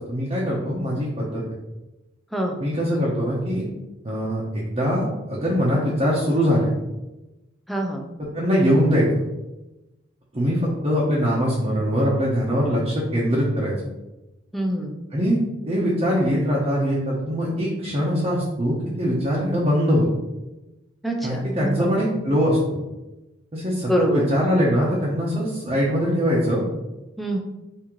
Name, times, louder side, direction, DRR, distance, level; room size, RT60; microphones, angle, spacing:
voice 1, 0.0-1.4 2.6-3.6 4.0-6.7 8.3-9.2 10.3-13.7 15.1-15.4 15.7-20.0 21.2-22.6 23.5-26.6, equal, 30° right, -6 dB, 0.9 m, -22 dB
voice 2, 7.7-8.0 14.5-15.0 19.4-19.6 21.0-21.9 23.9-24.3 27.2-27.4, right 1 dB, ahead, 1 dB, 0.5 m, -25 dB
5.9 x 2.8 x 3.1 m, 1.0 s
head